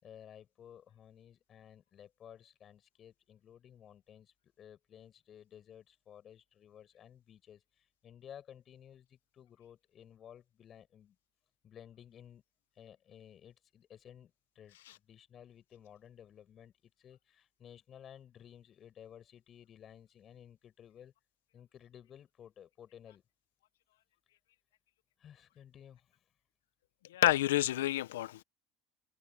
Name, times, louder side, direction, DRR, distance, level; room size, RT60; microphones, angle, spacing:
voice 1, 0.0-11.2 11.6-12.4 12.7-21.1 21.5-23.2 25.2-26.2, left 9 dB, 45° left, 7.6 m, -55 dB
voice 2, 27.1-28.4, left 14 dB, 90° left, 1.0 m, -29 dB
hypercardioid pair, 80°, 0 cm